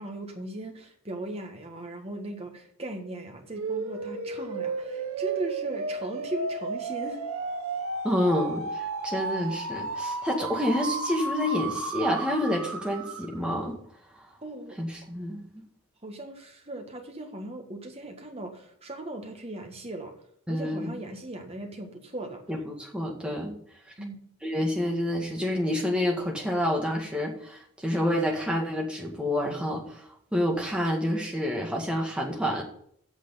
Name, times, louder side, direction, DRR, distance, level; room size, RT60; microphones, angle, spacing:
voice 1, 0.0-7.2 14.4-14.8 16.0-20.1 20.5-22.4 24.0-24.2, right 2 dB, 30° right, 3 dB, 1.6 m, -38 dB
sound 1, 3.5-13.4, right 3 dB, 80° right, 1.3 m, -33 dB
voice 2, 8.0-13.8 14.8-15.6 20.5-21.0 22.5-23.6 24.4-30.0 30.3-32.6, left 1 dB, 5° right, -1 dB, 1.9 m, -28 dB
8.3 x 6.5 x 8.3 m, 0.67 s
head